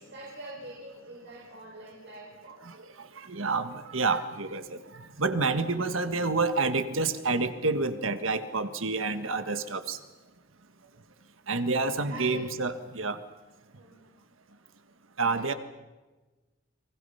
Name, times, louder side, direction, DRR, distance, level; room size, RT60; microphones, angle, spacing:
voice 1, 0.0-2.6 5.7-6.3 9.3-9.6 11.5-12.4 13.7-14.0 15.3-15.6, right 2 dB, 60° right, -4 dB, 6.5 m, -46 dB
voice 2, 2.7-10.0 11.5-13.2 15.2-15.5, right 3 dB, 80° right, 9 dB, 1.6 m, -29 dB
30.0 x 23.5 x 5.7 m, 1.2 s
head